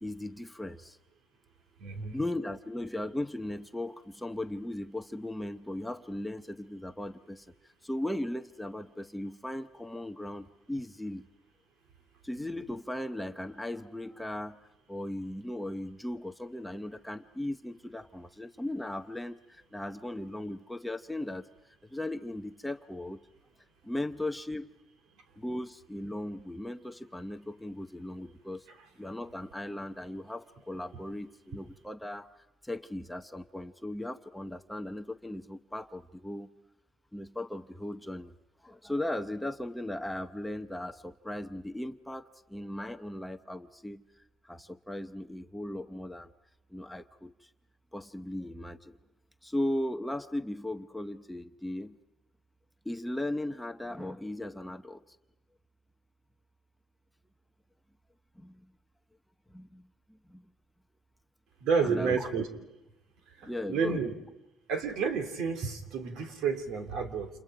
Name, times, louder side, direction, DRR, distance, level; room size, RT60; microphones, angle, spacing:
voice 1, 0.0-1.0 2.1-11.3 12.2-14.6 14.9-23.2 23.8-24.7 25.4-28.7 29.0-36.5 37.1-38.3 38.6-46.3 46.7-47.5 47.9-49.0 49.4-52.0 52.8-55.2 58.4-58.7 59.5-59.8 60.1-60.4 61.8-62.3 63.4-64.0, left 1 dB, 5° left, 7 dB, 0.7 m, -37 dB
voice 2, 1.8-2.2 61.6-62.5 63.4-64.1 64.7-67.3, right 5 dB, 70° right, 5 dB, 3.3 m, -30 dB
29.5 x 28.0 x 5.0 m, 0.98 s
cardioid pair, 140°, 0 cm